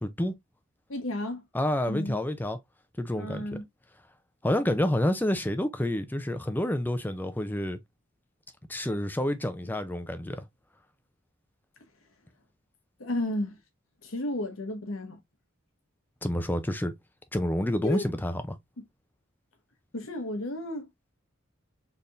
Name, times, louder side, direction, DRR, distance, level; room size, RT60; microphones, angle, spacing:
voice 1, 0.0-0.3 1.5-2.6 3.0-3.4 4.4-7.8 8.7-10.4 16.2-16.9 17.3-18.6, left 1 dB, 10° left, 0.5 m, -28 dB
voice 2, 0.9-1.4 1.9-2.2 3.2-3.7 13.0-13.6 14.0-15.2 17.8-18.1 19.9-20.9, left 1 dB, 70° left, 1.2 m, -32 dB
4.2 x 3.5 x 2.5 m
head